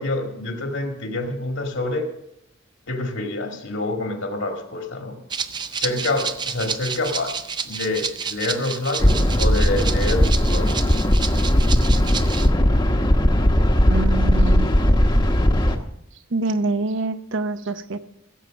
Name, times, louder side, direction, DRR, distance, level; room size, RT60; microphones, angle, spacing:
voice 1, 0.0-2.1 2.9-5.1 5.7-7.3 7.6-11.3, left 2 dB, 70° left, 3 dB, 2.0 m, -27 dB
Rattle (instrument), 5.3-12.5, right 6 dB, 20° right, 0.4 m, -30 dB
sound 1, 9.0-15.8, equal, 20° left, 0.9 m, -18 dB
voice 2, 13.9-14.8 16.3-18.0, right 3 dB, 60° right, 11 dB, 0.7 m, -25 dB
16.0 x 7.0 x 6.3 m, 0.79 s
head